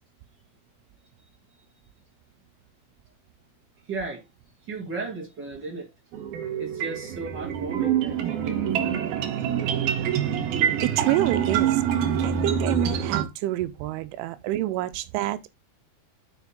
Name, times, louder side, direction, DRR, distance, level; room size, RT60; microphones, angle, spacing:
voice 1, 3.9-4.2 4.7-5.9 6.6-9.0, right 3 dB, 45° right, 1.4 m, -35 dB
sound 1, 6.1-13.2, right 9 dB, 65° right, 2.6 m, -26 dB
voice 2, 10.8-11.8 12.2-15.5, right 15 dB, 85° right, 3.2 m, -27 dB
7.3 x 6.3 x 3.6 m
omnidirectional pair, 5.5 m